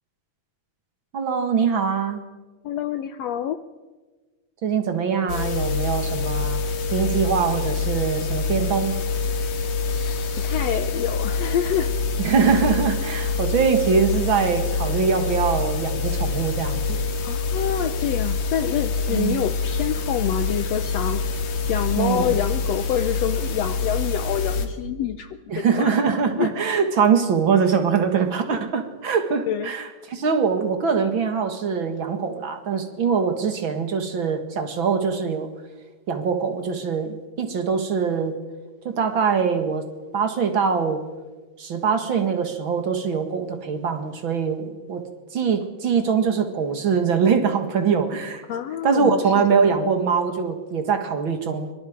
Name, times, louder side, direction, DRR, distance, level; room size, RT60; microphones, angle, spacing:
voice 1, 1.1-2.2 4.6-6.6 6.9-8.9 12.2-17.0 19.1-19.4 22.0-22.3 25.5-35.5 36.1-38.4 38.8-39.9 40.1-41.0 41.6-45.0 45.3-48.4 48.8-51.7, right 6 dB, 45° right, 7 dB, 2.3 m, -23 dB
voice 2, 2.6-3.6 10.3-11.9 17.2-21.2 21.7-25.9 26.4-26.5 29.5-29.7 48.5-49.4, left 10 dB, 70° left, 10 dB, 1.7 m, -27 dB
sound 1, 5.3-24.7, left 4 dB, 90° left, 3.5 m, -26 dB
25.0 x 24.0 x 5.1 m, 1.3 s
omnidirectional pair, 3.5 m